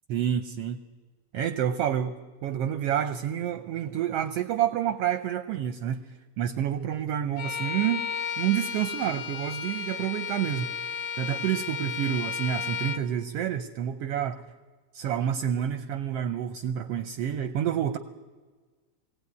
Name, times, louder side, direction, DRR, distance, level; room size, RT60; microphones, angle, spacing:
voice 1, 0.1-0.8 1.3-2.1 2.4-8.0 8.4-10.7 11.2-14.4 14.9-18.0, right 10 dB, 70° right, 10 dB, 1.5 m, -28 dB
Bowed string instrument, 7.4-13.1, left 6 dB, 65° left, 2.0 m, -33 dB
20.0 x 17.0 x 9.5 m, 1.4 s
omnidirectional pair, 3.3 m